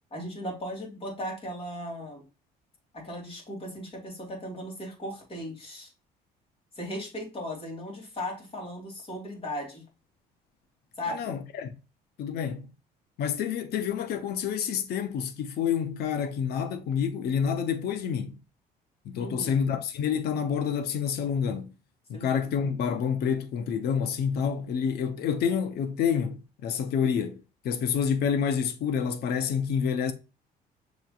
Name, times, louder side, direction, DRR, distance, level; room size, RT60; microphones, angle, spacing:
voice 1, 0.1-2.2 2.9-5.9 6.8-9.8 11.0-11.3 19.2-19.6 22.1-22.3, equal, 35° left, 2.7 m, -37 dB
voice 2, 11.1-11.7 12.2-12.6 13.2-18.4 19.0-21.7 22.1-30.1, left 7 dB, 70° left, 0.8 m, -28 dB
6.5 x 3.1 x 2.4 m
cardioid pair, 110°, 17 cm